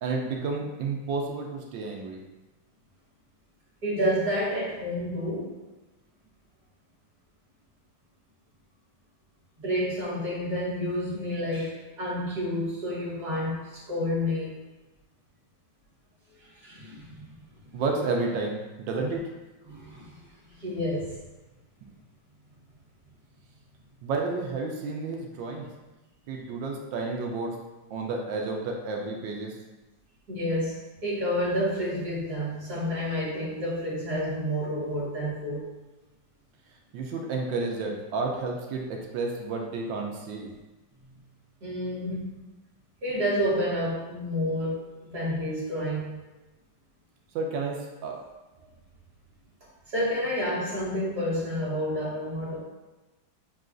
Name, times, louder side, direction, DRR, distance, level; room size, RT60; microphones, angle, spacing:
voice 1, 0.0-2.2 17.7-19.2 24.0-25.7 26.3-27.5 27.9-29.5 36.9-40.5 47.3-48.2, right 3 dB, 75° right, 0 dB, 1.3 m, -31 dB
voice 2, 3.8-5.6 9.6-14.6 16.4-17.2 19.7-20.2 20.5-21.2 30.3-35.7 41.6-42.3 43.0-46.2 49.6-52.6, equal, 60° right, -7 dB, 1.8 m, -29 dB
6.5 x 2.3 x 2.5 m, 1.1 s
omnidirectional pair, 2.1 m